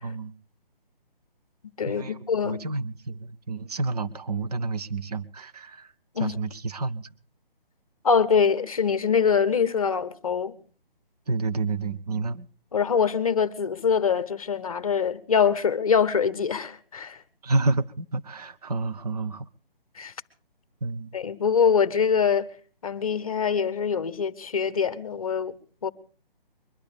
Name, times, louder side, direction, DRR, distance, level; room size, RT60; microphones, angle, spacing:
voice 1, 0.0-0.3 1.9-5.9 6.2-7.1 11.3-12.5 17.4-19.5 20.8-21.1, right 3 dB, 40° right, 0.9 m, -29 dB
voice 2, 1.8-2.6 6.1-6.4 8.0-10.6 12.7-17.2 20.0-20.1 21.1-22.5 22.8-25.9, left 6 dB, 40° left, 0.9 m, -24 dB
22.5 x 12.0 x 5.2 m
hypercardioid pair, 170°, 29 cm